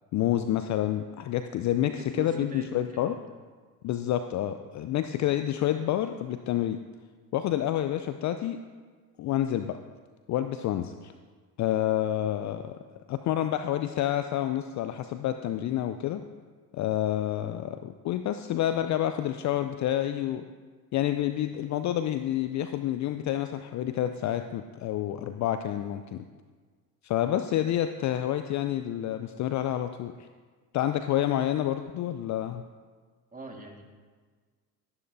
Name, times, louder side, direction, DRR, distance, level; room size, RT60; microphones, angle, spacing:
voice 1, 0.1-3.2 3.8-6.8 7.3-8.6 9.2-9.8 10.3-11.1 11.6-12.8 13.1-16.2 16.7-20.5 20.9-26.2 27.0-30.1 30.7-32.6, left 12 dB, 40° left, 9 dB, 0.5 m, -28 dB
voice 2, 1.7-3.2 4.4-4.5 33.3-33.8, right 2 dB, 15° right, 2 dB, 1.7 m, -42 dB
12.5 x 11.0 x 2.6 m, 1.5 s
hypercardioid pair, 65°, 48 cm